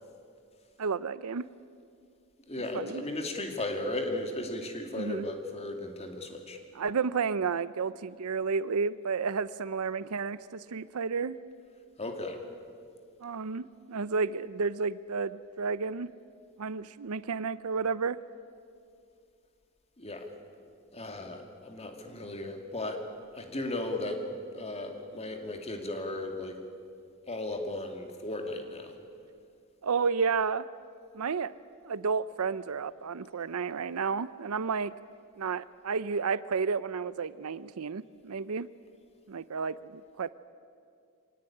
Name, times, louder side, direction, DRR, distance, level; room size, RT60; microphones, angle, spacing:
voice 1, 0.8-1.5 2.7-3.0 4.9-5.2 6.7-11.4 13.2-16.1 16.6-18.2 29.8-30.7 31.1-31.5 31.8-34.9 35.4-38.7 39.3-40.3, right 5 dB, 80° right, 16 dB, 0.6 m, -31 dB
voice 2, 2.5-6.6 12.0-12.4 20.0-20.3 20.9-23.1 23.4-24.3 24.5-26.6 27.3-29.0, left 2 dB, 30° left, 4 dB, 2.4 m, -36 dB
24.5 x 18.0 x 9.9 m, 2.3 s
head